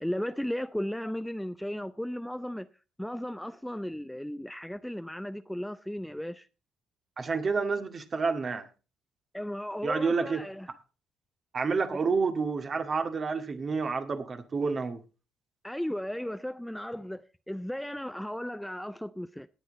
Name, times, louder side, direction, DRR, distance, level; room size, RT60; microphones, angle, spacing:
voice 1, 0.0-2.7 3.0-6.5 9.3-10.7 11.9-12.0 15.6-19.5, equal, 5° left, 0.6 m, -35 dB
voice 2, 7.2-8.7 9.8-10.4 11.5-15.0, right 4 dB, 45° right, 2.0 m, -29 dB
19.0 x 8.3 x 4.0 m
hypercardioid pair, 45°, 0 cm